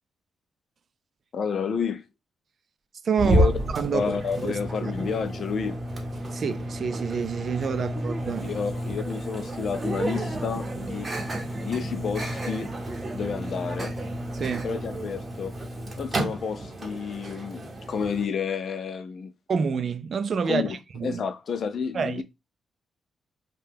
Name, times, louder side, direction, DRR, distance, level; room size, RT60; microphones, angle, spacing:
voice 1, 1.3-2.1 3.2-3.5 3.9-5.8 8.4-11.1 11.6-12.7 13.1-13.9 14.6-15.6 16.0-19.3 20.4-20.7 21.0-22.2, left 6 dB, 55° left, 0.4 m, -30 dB
voice 2, 3.0-4.1 4.4-4.9 6.2-8.5 11.1-11.2 14.3-14.7 17.2-17.4 19.5-21.2 21.9-22.2, right 6 dB, 50° right, 0.4 m, -28 dB
Microwave oven, 3.2-18.3, right 1 dB, 25° right, 0.9 m, -31 dB
2.7 x 2.2 x 3.4 m
cardioid pair, 125°, 0 cm